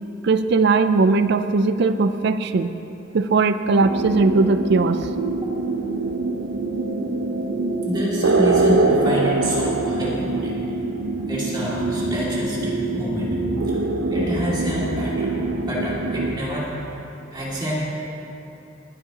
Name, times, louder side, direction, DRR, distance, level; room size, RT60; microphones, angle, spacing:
voice 1, 0.2-2.7 3.1-5.1, right 3 dB, 55° right, 11 dB, 0.4 m, -19 dB
sound 1, 3.8-16.4, right 2 dB, 75° right, 0.9 m, -24 dB
voice 2, 7.8-10.5 11.3-13.4 14.1-15.4 15.7-16.7 17.3-17.7, equal, 20° right, -7 dB, 2.4 m, -27 dB
sound 2, 11.5-15.2, left 1 dB, 70° left, 1.2 m, -41 dB
19.5 x 10.5 x 2.9 m, 2.9 s
head